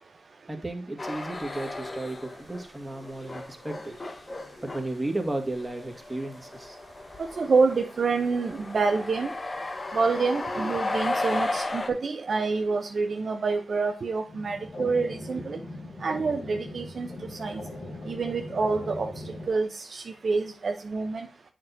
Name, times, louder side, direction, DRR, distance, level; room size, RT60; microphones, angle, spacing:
voice 1, 0.5-3.9 4.6-6.8, right 2 dB, 20° right, 4 dB, 1.9 m, -34 dB
sound 1, 1.0-2.6 2.9-11.9, left 2 dB, 40° left, 1.1 m, -34 dB
voice 2, 7.2-9.3 9.9-15.6 16.0-17.1 17.4-17.6 18.1-19.1 19.5-21.3, right 4 dB, 60° right, 5 dB, 0.7 m, -27 dB
sound 2, 14.3-19.5, left 1 dB, 60° left, 1.4 m, -39 dB
7.6 x 6.1 x 2.7 m, 0.36 s
cardioid pair, 45°, 0 cm